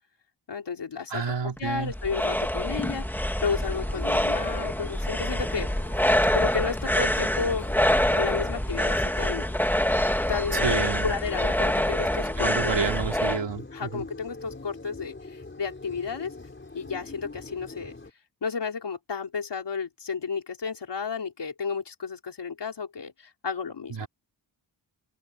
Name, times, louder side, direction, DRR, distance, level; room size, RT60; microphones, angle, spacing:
voice 1, 0.5-1.3 1.6-5.7 6.3-7.7 8.1-9.5 10.3-12.9 13.7-16.3 16.7-17.9 18.4-24.1, left 5 dB, 60° left, 4.1 m, -32 dB
voice 2, 1.1-1.9 10.5-11.1 12.4-14.0 23.9-24.1, right 6 dB, 65° right, 2.6 m, -30 dB
sound 1, 1.6-13.4, left 1 dB, 5° left, 1.8 m, -26 dB
sound 2, 3.4-18.1, left 3 dB, 25° left, 5.0 m, -43 dB
open air
wide cardioid pair, 130°, 46 cm